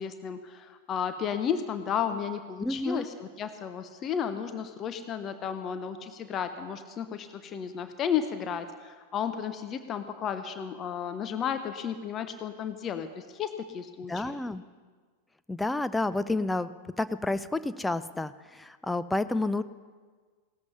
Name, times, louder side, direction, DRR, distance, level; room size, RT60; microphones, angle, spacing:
voice 1, 0.0-14.4, left 8 dB, 30° left, 9 dB, 0.9 m, -33 dB
voice 2, 2.6-3.1 14.1-14.6 15.5-16.7 17.0-19.6, left 2 dB, 5° left, 13 dB, 0.5 m, -30 dB
17.5 x 13.0 x 5.6 m, 1.5 s
figure-of-eight pair, 90°, 0 cm